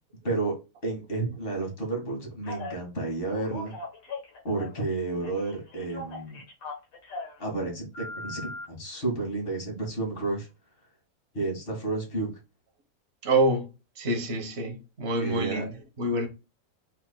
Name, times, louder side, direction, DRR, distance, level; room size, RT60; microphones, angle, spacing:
voice 1, 0.2-0.6 0.8-3.7 4.4-6.4 7.4-10.5 11.3-12.3 15.2-15.6, right 3 dB, 35° left, 1.9 m, -31 dB
Telephone, 2.4-2.8 3.3-4.9 5.2-7.4 7.9-8.6, left 3 dB, 55° left, 1.6 m, -39 dB
voice 2, 13.2-13.7 14.0-16.3, right 1 dB, 45° right, 1.2 m, -27 dB
5.9 x 3.7 x 2.2 m
omnidirectional pair, 1.8 m